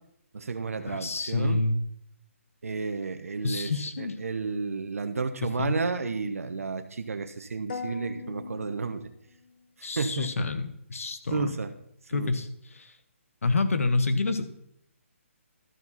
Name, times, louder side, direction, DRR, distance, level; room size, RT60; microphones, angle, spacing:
voice 1, 0.3-1.6 2.6-3.7 4.0-9.1 9.8-10.5 11.3-11.7 12.1-12.3, right 4 dB, 85° right, 8 dB, 0.9 m, -32 dB
voice 2, 0.9-1.8 3.4-4.2 5.4-5.8 9.8-11.6 12.1-12.5 12.7-12.9 13.4-14.4, left 3 dB, 75° left, 10 dB, 1.1 m, -28 dB
sound 1, 7.7-9.7, left 5 dB, 40° left, 0.6 m, -40 dB
12.5 x 4.7 x 5.6 m, 0.72 s
hypercardioid pair, 170°, 8 cm